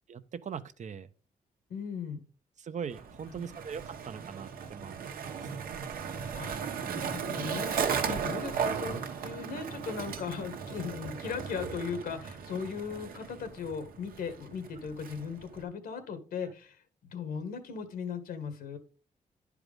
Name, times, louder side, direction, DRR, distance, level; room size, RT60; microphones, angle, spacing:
voice 1, 0.1-1.1 2.6-5.5, right 7 dB, 55° right, 0.8 m, -41 dB
voice 2, 1.7-2.2 3.3-3.5 6.3-18.8, left 6 dB, 85° left, 1.8 m, -38 dB
Skateboard, 2.9-15.6, right 6 dB, 80° right, 1.2 m, -36 dB
10.5 x 4.8 x 5.2 m
cardioid pair, 80°, 15 cm